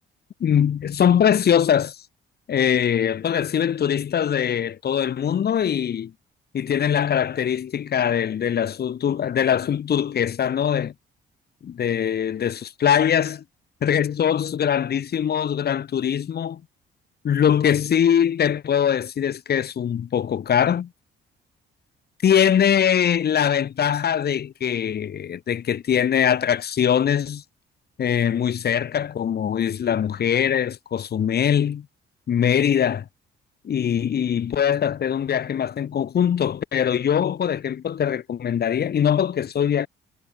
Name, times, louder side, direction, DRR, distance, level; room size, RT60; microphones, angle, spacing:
voice 1, 0.4-2.0 2.5-6.1 6.5-10.9 11.6-13.4 13.8-16.6 17.2-20.9 22.2-27.4 28.0-31.9 32.3-33.1 33.6-39.9, left 8 dB, 55° left, 1.6 m, -22 dB
cardioid pair, 90°, 20 cm